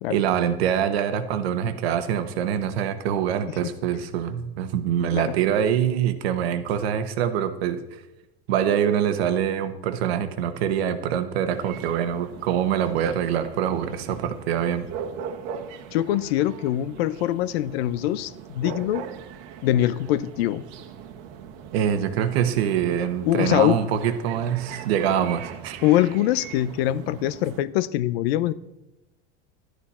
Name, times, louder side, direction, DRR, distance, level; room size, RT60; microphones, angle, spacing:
voice 1, 0.1-7.8 8.5-14.9 21.7-25.8, right 9 dB, 85° right, 10 dB, 1.2 m, -24 dB
sound 1, 11.5-27.6, right 7 dB, 60° right, 1.3 m, -40 dB
voice 2, 15.9-19.0 19.6-20.6 23.2-23.8 25.8-28.5, left 13 dB, 80° left, 18 dB, 0.6 m, -23 dB
12.0 x 11.5 x 4.2 m, 0.98 s
supercardioid pair, 135°, 30 cm